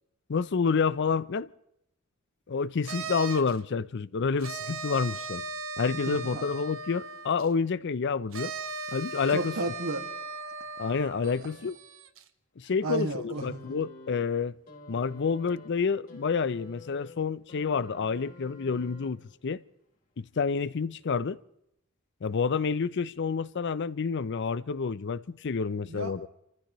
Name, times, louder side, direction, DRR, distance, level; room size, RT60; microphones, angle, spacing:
voice 1, 0.3-1.5 2.5-5.4 5.8-8.5 8.9-9.5 10.8-11.8 12.6-14.5 14.9-19.6 20.2-21.4 22.2-26.3, left 5 dB, 55° left, 0.5 m, -29 dB
sound 1, 2.8-3.6 4.4-7.5 8.3-12.2, right 4 dB, 65° right, 1.0 m, -38 dB
voice 2, 5.9-6.5 9.3-10.1 11.4-11.5 12.8-13.8 25.9-26.3, right 2 dB, 85° right, 1.9 m, -34 dB
sound 2, 13.3-19.5 20.6-20.7, left 2 dB, 40° left, 3.6 m, -50 dB
28.5 x 14.5 x 3.1 m
head